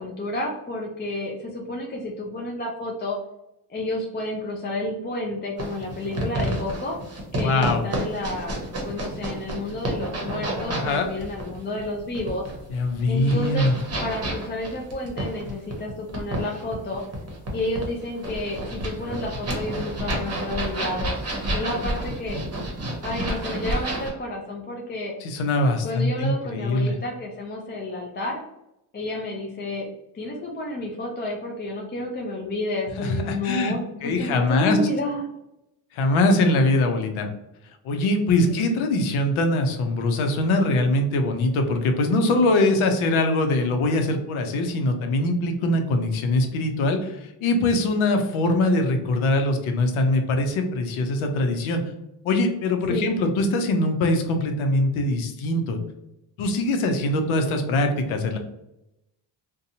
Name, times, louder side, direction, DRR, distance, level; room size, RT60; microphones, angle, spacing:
voice 1, 0.0-3.2 3.7-7.0 7.3-8.6 8.8-12.5 13.1-13.7 14.0-17.0 17.5-21.2 21.5-22.4 23.0-25.1 25.8-28.4 28.9-29.9 30.1-35.3 38.4-38.7 52.9-53.1, left 1 dB, 25° left, 0 dB, 0.4 m, -30 dB
sound 1, 5.6-24.1, right 1 dB, 30° right, 0.9 m, -30 dB
voice 2, 7.4-7.8 10.7-11.1 12.7-13.7 25.2-26.9 33.0-33.7 34.0-34.8 35.9-37.3 37.8-51.8 52.2-55.8 56.4-58.4, left 2 dB, 85° left, 5 dB, 0.7 m, -22 dB
2.6 x 2.2 x 2.7 m, 0.86 s
cardioid pair, 80°, 47 cm